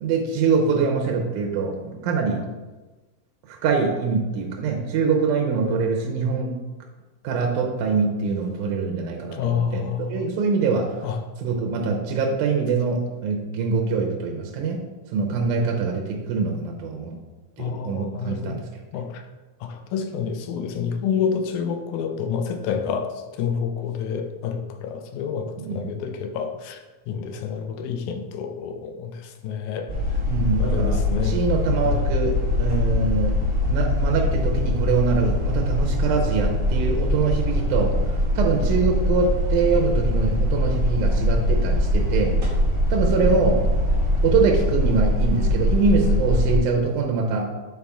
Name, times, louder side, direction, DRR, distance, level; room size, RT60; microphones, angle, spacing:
voice 1, 0.0-2.5 3.5-6.6 7.2-10.9 11.4-14.9 15.1-17.2 17.6-18.6 25.6-25.9 30.3-38.0 38.4-42.4 42.9-43.7 44.2-47.4, right 4 dB, 90° right, 1 dB, 2.2 m, -24 dB
voice 2, 9.3-10.4 11.0-11.2 17.6-18.6 18.9-19.2 19.6-29.9 30.6-31.4 31.8-32.2, left 7 dB, 85° left, 6 dB, 2.0 m, -28 dB
sound 1, 29.9-46.6, left 1 dB, 55° right, 0.9 m, -22 dB
6.9 x 4.2 x 3.5 m, 1.2 s
omnidirectional pair, 3.4 m